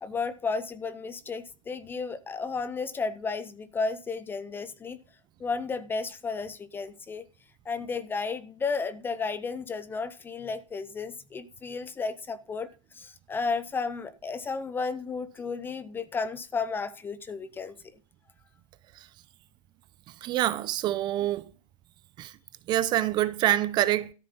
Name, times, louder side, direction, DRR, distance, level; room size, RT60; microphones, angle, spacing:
voice 1, 0.0-5.0 5.4-7.3 7.7-17.8, left 4 dB, 10° left, 0.6 m, -33 dB
voice 2, 20.2-21.5 22.2-22.3 22.7-24.1, right 13 dB, 25° right, 0.7 m, -26 dB
13.0 x 7.5 x 5.5 m
hypercardioid pair, 135°, 17 cm